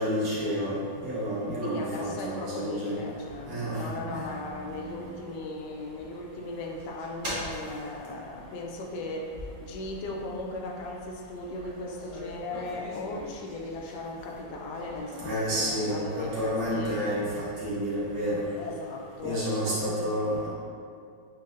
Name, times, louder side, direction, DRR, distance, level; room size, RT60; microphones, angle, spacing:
voice 1, 0.0-3.0 3.5-3.9 4.1-4.2 15.2-18.4 19.2-20.5, equal, 80° right, -10 dB, 1.8 m, -30 dB
voice 2, 1.6-9.3 9.6-17.1 18.6-20.4, left 2 dB, 75° left, 0 dB, 1.1 m, -37 dB
sound 1, 2.9-18.6, equal, 35° right, 0.9 m, -44 dB
6.2 x 2.6 x 2.5 m, 2.3 s
omnidirectional pair, 2.0 m